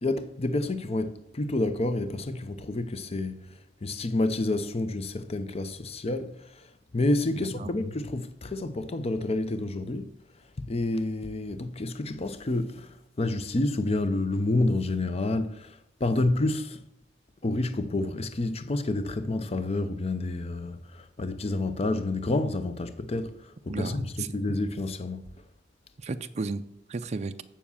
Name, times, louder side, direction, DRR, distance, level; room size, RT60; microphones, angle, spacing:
voice 1, 0.0-6.7 6.9-10.1 10.6-16.8 17.4-25.2, left 2 dB, 35° left, 0.6 m, -29 dB
voice 2, 7.4-7.7 23.7-24.3 26.0-27.4, right 3 dB, 35° right, 0.4 m, -34 dB
7.2 x 7.2 x 7.0 m
head